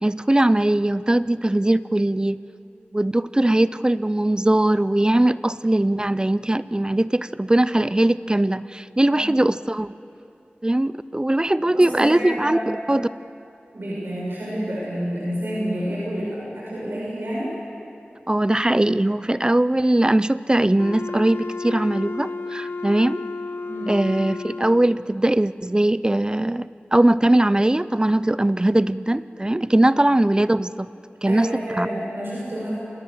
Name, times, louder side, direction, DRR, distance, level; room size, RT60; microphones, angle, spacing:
voice 1, 0.0-2.4 2.9-9.9 10.6-12.6 12.9-13.1 18.3-23.2 23.9-30.9 31.2-31.5 31.7-31.9, right 1 dB, 20° right, 16 dB, 0.5 m, -20 dB
voice 2, 11.6-12.6 13.7-17.5 23.7-24.0 29.8-29.9 31.2-32.7, equal, 70° right, -6 dB, 7.2 m, -29 dB
Wind instrument woodwind instrument, 20.8-25.1, left 3 dB, 80° left, 1.0 m, -32 dB
26.0 x 20.0 x 7.3 m, 2.6 s
wide cardioid pair, 65°, 4 cm